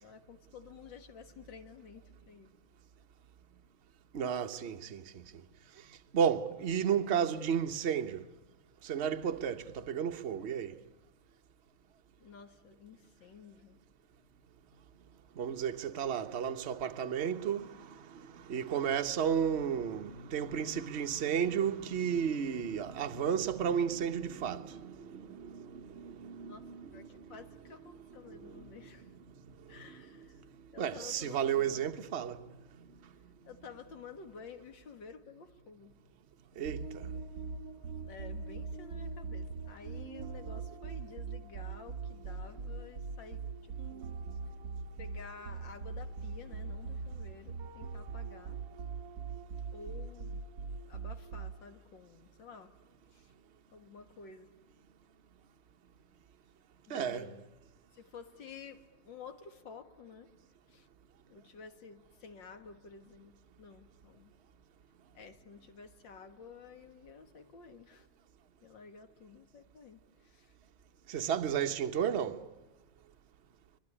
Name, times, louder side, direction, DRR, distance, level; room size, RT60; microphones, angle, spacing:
voice 1, 0.0-2.5 12.2-13.8 26.4-29.2 29.6-30.4 30.7-31.9 33.4-35.9 38.0-44.1 45.0-48.6 49.7-50.4 50.8-52.7 53.1-53.3 53.7-54.5 56.9-57.5 57.9-58.8 59.1-60.3 60.7-60.9 61.3-63.3 63.6-64.3 65.1-68.1 68.6-70.5, left 5 dB, 65° left, 2.2 m, -52 dB
voice 2, 4.1-5.0 6.1-8.2 8.8-10.7 15.4-27.3 28.3-28.7 30.8-32.4 36.6-37.0 56.9-57.3 71.1-72.4, right 8 dB, 45° right, 1.0 m, -33 dB
sound 1, 36.7-51.8, right 5 dB, 65° right, 1.8 m, -42 dB
25.0 x 21.5 x 9.9 m
omnidirectional pair, 2.2 m